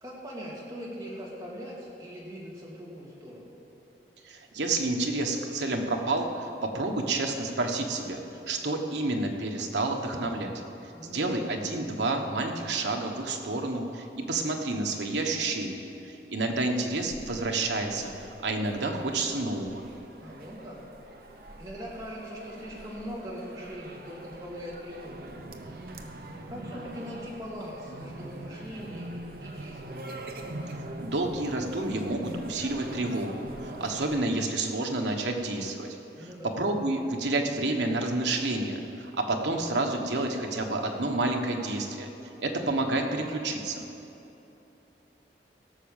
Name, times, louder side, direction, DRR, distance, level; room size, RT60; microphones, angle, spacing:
voice 1, 0.0-3.5 10.9-11.4 20.2-20.8 21.6-25.2 26.5-30.1 36.2-36.6, equal, 20° right, -6 dB, 2.5 m, -41 dB
voice 2, 4.2-8.2 8.5-10.5 11.0-15.8 16.3-18.1 18.4-19.9 31.0-42.1 42.4-43.9, right 2 dB, 80° right, 2 dB, 1.3 m, -29 dB
sound 1, 16.8-34.2, right 1 dB, 55° right, 0.8 m, -43 dB
17.0 x 6.4 x 7.2 m, 3.0 s
head